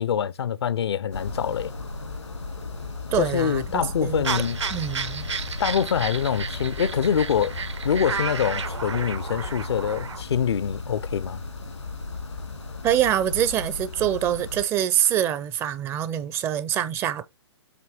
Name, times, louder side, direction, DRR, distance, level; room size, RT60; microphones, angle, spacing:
voice 1, 0.0-1.7 3.2-4.6 5.6-7.6 7.8-11.4, left 8 dB, 65° left, 0.5 m, -25 dB
sound 1, 1.1-14.6, left 3 dB, 85° left, 2.2 m, -35 dB
voice 2, 3.1-4.2 4.7-5.3 12.8-17.2, right 10 dB, 15° right, 0.4 m, -25 dB
sound 2, 4.2-10.2, right 5 dB, 80° right, 1.0 m, -32 dB
8.0 x 2.7 x 5.6 m
figure-of-eight pair, 130°, 15 cm